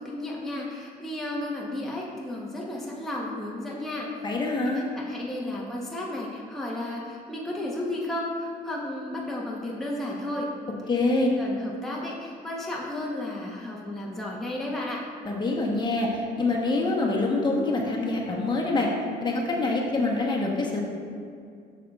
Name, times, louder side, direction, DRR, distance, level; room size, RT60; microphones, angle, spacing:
voice 1, 0.0-4.1 4.7-10.5 10.9-15.0, left 1 dB, ahead, -5 dB, 0.9 m, -33 dB
voice 2, 4.2-4.9 10.9-11.3 15.2-18.9 19.2-20.8, left 2 dB, 25° left, -2 dB, 1.0 m, -25 dB
8.9 x 6.6 x 2.4 m, 2.3 s
cardioid pair, 110°, 17 cm